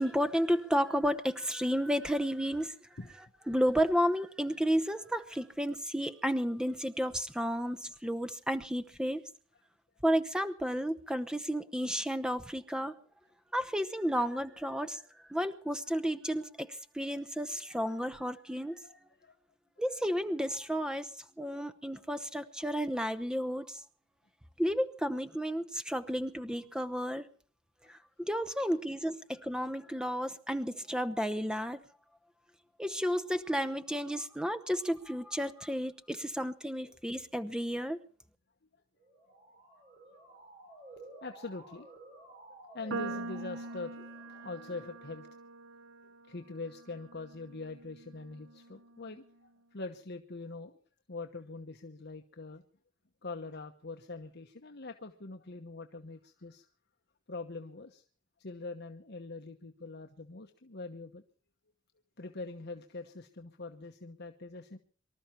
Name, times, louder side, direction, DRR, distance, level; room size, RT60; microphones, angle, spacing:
voice 1, 0.0-2.8 3.5-9.2 10.0-12.9 13.5-15.0 15.3-16.7 16.9-18.8 19.8-21.1 21.4-23.8 24.6-27.3 27.9-28.0 28.3-31.8 32.8-38.0, equal, 5° right, 12 dB, 0.9 m, -32 dB
voice 2, 18.8-19.4 22.6-22.7 26.1-26.2 27.8-27.9 36.8-37.0 41.2-41.9 42.7-45.4 46.3-50.8 51.1-52.6 53.2-56.7 57.3-58.0 58.4-61.2 62.2-64.8, left 3 dB, 55° left, 4 dB, 1.1 m, -43 dB
Motor vehicle (road) / Siren, 39.0-44.9, right 2 dB, 35° right, 5.3 m, -53 dB
sound 1, 42.9-49.2, right 3 dB, 65° right, 0.8 m, -44 dB
24.5 x 13.0 x 4.5 m, 0.43 s
head